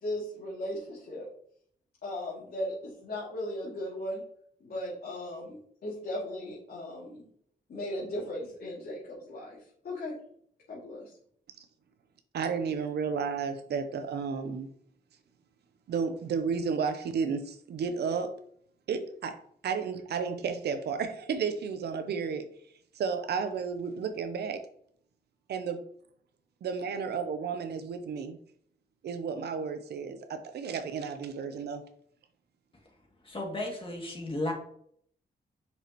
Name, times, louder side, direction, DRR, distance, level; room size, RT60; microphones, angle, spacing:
voice 1, 0.0-1.3 2.0-4.2 4.6-7.3 7.7-9.6 9.8-10.2 10.7-11.2, left 1 dB, 70° left, -7 dB, 2.4 m, -37 dB
voice 2, 12.3-14.7 15.9-18.4 18.9-22.5 22.9-24.7 25.5-25.8 26.6-28.4 29.0-31.8, right 6 dB, 85° right, 8 dB, 0.6 m, -32 dB
voice 3, 33.2-34.5, left 1 dB, 30° left, -1 dB, 2.3 m, -34 dB
6.1 x 5.5 x 3.0 m, 0.62 s
cardioid pair, 85°, 17 cm